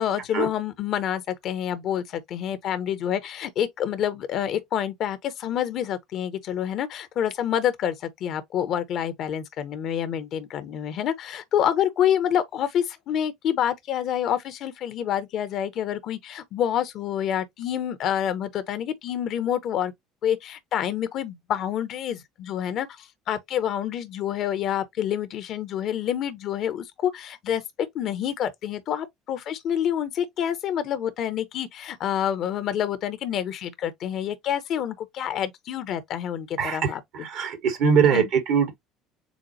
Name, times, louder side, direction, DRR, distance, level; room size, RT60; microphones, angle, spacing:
voice 1, 0.0-7.9 8.2-19.9 20.2-27.6 27.9-37.3 38.1-38.3, left 10 dB, 50° left, 0.8 m, -27 dB
voice 2, 36.6-36.9 37.2-38.2 38.5-38.8, right 7 dB, 55° right, 1.5 m, -21 dB
7.1 x 2.4 x 2.7 m
figure-of-eight pair, 60°, 0 cm